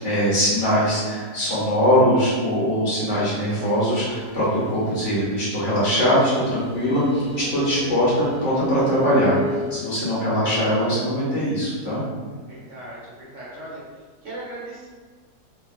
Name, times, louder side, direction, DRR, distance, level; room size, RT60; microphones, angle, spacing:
voice 1, 0.0-9.3 9.7-12.0, equal, 55° left, -8 dB, 1.1 m, -21 dB
sound 1, 3.4-9.7, left 1 dB, 20° right, 0.4 m, -36 dB
voice 2, 12.2-14.9, right 1 dB, 60° right, -7 dB, 0.9 m, -39 dB
2.7 x 2.7 x 2.5 m, 1.5 s
omnidirectional pair, 1.7 m